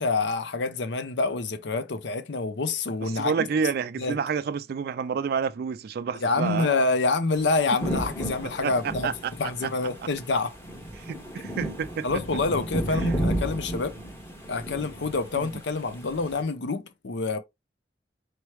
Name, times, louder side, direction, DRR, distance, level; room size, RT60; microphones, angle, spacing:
voice 1, 0.0-3.3 4.0-4.2 6.2-9.1 9.4-10.6 12.0-13.9 14.5-17.4, left 3 dB, 65° left, 0.6 m, -27 dB
voice 2, 3.0-6.7 8.6-9.3 9.6-9.7 11.0-12.1 15.3-15.5, right 6 dB, 55° right, 0.3 m, -29 dB
sound 1, 7.3-16.4, right 1 dB, 15° left, 1.1 m, -33 dB
4.5 x 3.1 x 3.1 m
head